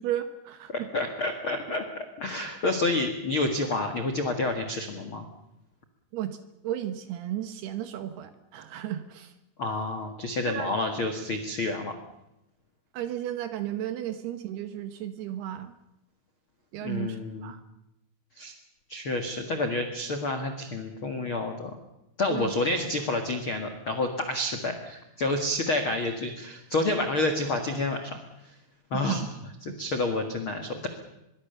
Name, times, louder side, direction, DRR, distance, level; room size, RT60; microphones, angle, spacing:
voice 1, 0.0-0.9 6.1-9.3 10.5-10.7 12.9-15.7 16.7-17.6 22.3-22.5 28.9-29.3 29.7-29.8, right 11 dB, 70° right, 10 dB, 2.7 m, -34 dB
voice 2, 0.7-5.2 9.6-11.9 16.8-17.5 18.4-18.5 18.9-21.8 22.2-28.2 28.4-28.5 28.9-29.2 29.6-30.9, left 2 dB, 75° left, 6 dB, 1.2 m, -29 dB
24.0 x 22.5 x 7.0 m, 0.91 s
omnidirectional pair, 5.6 m